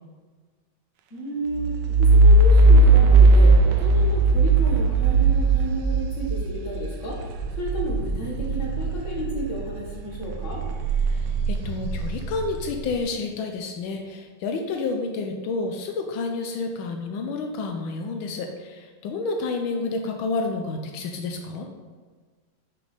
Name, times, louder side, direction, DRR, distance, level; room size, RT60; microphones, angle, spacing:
voice 1, 1.1-7.3 7.6-10.6, equal, 40° left, -3 dB, 1.9 m, -32 dB
sound 1, 1.6-9.8 10.2-12.8, right 2 dB, 75° right, 1.1 m, -18 dB
voice 2, 11.1-21.7, left 3 dB, 85° left, 3 dB, 1.5 m, -30 dB
6.8 x 5.1 x 5.1 m, 1.5 s
omnidirectional pair, 2.2 m